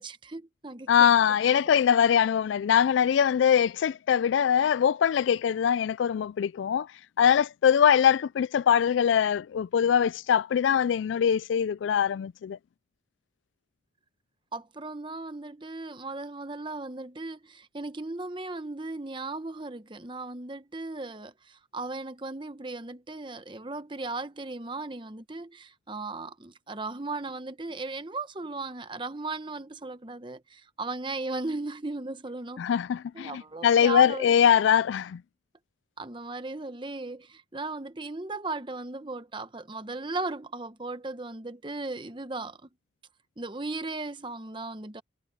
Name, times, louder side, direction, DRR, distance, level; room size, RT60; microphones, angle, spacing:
voice 1, 0.0-1.1 1.5-1.6 14.5-32.6 33.1-34.4 36.0-42.7 43.4-45.0, right 3 dB, 25° right, 0.9 m, -37 dB
voice 2, 0.9-6.9 7.2-12.6 32.6-35.2, left 8 dB, 75° left, 0.3 m, -22 dB
head